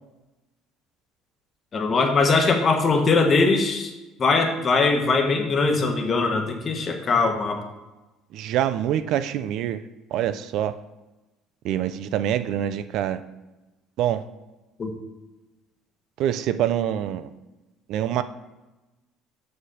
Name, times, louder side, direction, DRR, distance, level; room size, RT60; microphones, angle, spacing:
voice 1, 1.7-3.9 4.2-7.6 14.8-14.9, left 4 dB, 30° left, 4 dB, 1.1 m, -21 dB
voice 2, 8.3-9.8 10.1-10.8 11.6-13.2 14.0-14.2 16.2-17.3 17.9-18.2, right 11 dB, 60° right, 12 dB, 0.4 m, -25 dB
7.7 x 4.2 x 6.6 m, 1.1 s
cardioid pair, 150°, 0 cm